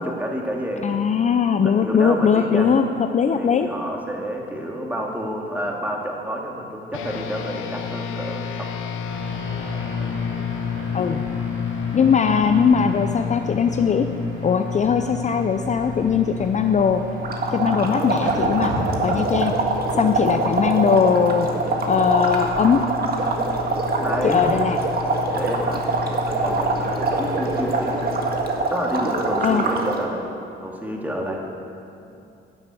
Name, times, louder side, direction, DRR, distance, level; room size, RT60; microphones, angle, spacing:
voice 1, 0.0-1.0 1.6-2.8 3.4-8.7 10.0-10.2 24.0-24.5 25.3-28.0 28.7-30.2 30.6-31.4, equal, 10° right, -1 dB, 2.2 m, -29 dB
voice 2, 0.8-2.8 3.1-3.7 10.9-11.2 11.9-14.1 14.4-17.0 17.5-18.7 19.0-19.5 20.0-21.5 21.9-22.8 24.2-24.8 29.4-29.6, left 6 dB, 35° left, 7 dB, 0.5 m, -20 dB
sound 1, 6.9-16.6, left 7 dB, 90° left, 0.9 m, -30 dB
sound 2, 9.0-28.3, left 4 dB, 90° right, 2.9 m, -33 dB
sound 3, 17.2-30.0, right 3 dB, 50° right, 1.7 m, -24 dB
11.5 x 8.1 x 8.3 m, 2.6 s
cardioid pair, 90°, 20 cm